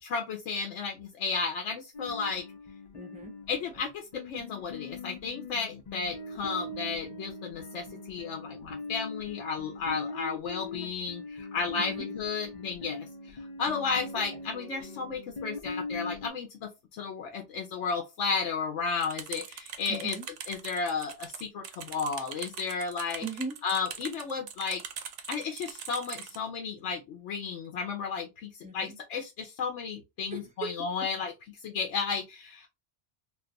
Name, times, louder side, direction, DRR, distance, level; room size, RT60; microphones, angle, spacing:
voice 1, 0.0-2.4 3.5-13.1 13.6-20.2 20.5-23.2 23.6-24.8 25.3-31.3 31.6-32.7, left 5 dB, 90° left, 0.9 m, -33 dB
sound 1, 1.9-16.3, left 3 dB, 45° left, 0.6 m, -41 dB
voice 2, 2.9-3.3 11.8-12.1 14.3-14.4 19.9-20.2 23.2-23.5 28.6-29.0 30.3-30.7 31.0-31.1, right 2 dB, 5° right, 0.8 m, -38 dB
sound 2, 19.0-26.4, right 7 dB, 85° right, 0.9 m, -42 dB
2.5 x 2.3 x 3.7 m
omnidirectional pair, 1.2 m